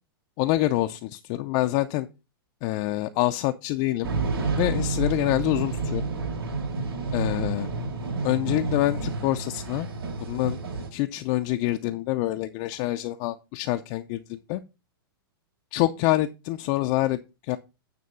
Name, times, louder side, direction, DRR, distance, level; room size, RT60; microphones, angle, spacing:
voice 1, 0.4-2.1 2.6-4.1 4.5-6.1 7.1-7.7 8.2-9.9 10.2-10.6 10.9-14.6 15.7-17.6, left 16 dB, 40° left, 7 dB, 0.5 m, -26 dB
sound 1, 4.0-10.9, right 4 dB, 85° right, 3.4 m, -29 dB
9.5 x 3.4 x 6.8 m, 0.28 s
hypercardioid pair, 145°, 12 cm